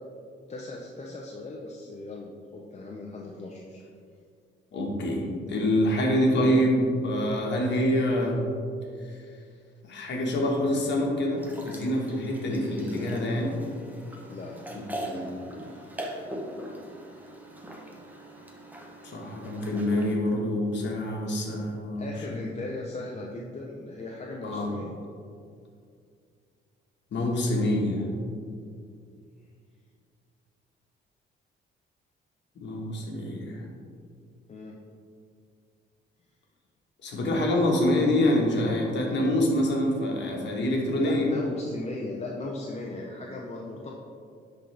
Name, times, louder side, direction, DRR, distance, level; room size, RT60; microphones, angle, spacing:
voice 1, 0.5-3.8 12.5-13.4 14.3-14.6 15.6-15.9 22.0-24.9 34.5-34.7 41.0-43.9, left 2 dB, 35° left, -2 dB, 0.7 m, -38 dB
voice 2, 4.7-8.4 9.0-9.2 9.9-13.6 15.1-15.3 19.0-22.4 24.4-24.7 27.1-28.1 32.5-33.6 37.0-41.3, left 1 dB, 65° left, 0 dB, 1.4 m, -26 dB
sound 1, 11.4-20.1, right 1 dB, 10° right, 1.0 m, -41 dB
10.0 x 3.9 x 3.4 m, 2.3 s
cardioid pair, 90°, 20 cm